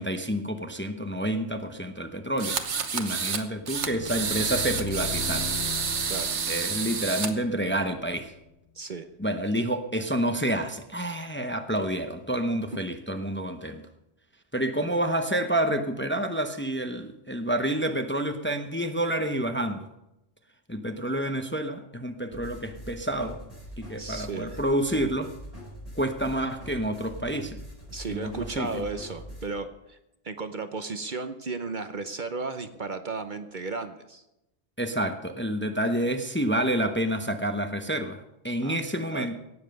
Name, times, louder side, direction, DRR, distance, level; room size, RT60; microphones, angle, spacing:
voice 1, 0.0-2.6 2.9-5.5 6.5-8.3 9.2-13.8 14.5-19.9 20.7-23.4 23.8-25.3 26.0-27.6 28.1-28.7 34.8-39.4, right 1 dB, 10° left, 7 dB, 0.8 m, -28 dB
sound 1, 2.4-3.4 3.7-7.3, right 6 dB, 85° right, 1.4 m, -29 dB
sound 2, 3.6-8.5, left 6 dB, 75° left, 1.1 m, -39 dB
voice 2, 8.8-9.1 24.0-24.6 27.9-30.0 30.2-34.2 38.6-38.8 39.1-39.3, right 4 dB, 50° right, 9 dB, 0.9 m, -34 dB
sound 3, 22.3-29.5, equal, 30° left, 4.7 m, -43 dB
17.5 x 7.4 x 6.6 m, 0.89 s
omnidirectional pair, 1.2 m